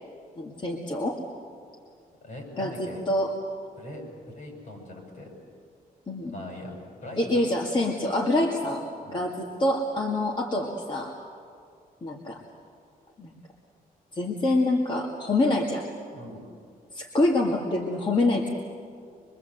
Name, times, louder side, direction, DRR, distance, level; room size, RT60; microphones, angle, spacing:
voice 1, 0.4-1.2 2.6-2.7 3.1-3.3 6.1-6.3 7.2-8.8 9.1-11.1 12.0-12.4 13.2-13.3 14.1-15.9 16.9-18.5, left 2 dB, 30° left, -1 dB, 2.2 m, -26 dB
voice 2, 2.2-3.0 3.8-5.3 6.2-7.5 9.0-9.2 16.1-16.4, left 1 dB, 60° left, 1 dB, 7.7 m, -41 dB
24.0 x 23.5 x 8.0 m, 2.3 s
cardioid pair, 130°, 15 cm